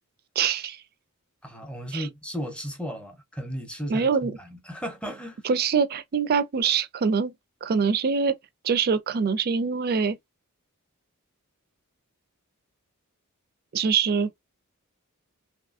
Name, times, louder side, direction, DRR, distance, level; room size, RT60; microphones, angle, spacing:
voice 1, 0.4-0.8 1.9-2.1 3.9-4.4 5.4-7.3 7.6-8.3 8.6-10.2 13.7-14.3, right 6 dB, 45° right, 0.4 m, -24 dB
voice 2, 1.4-5.4, equal, 5° left, 0.6 m, -35 dB
2.9 x 2.4 x 2.4 m
head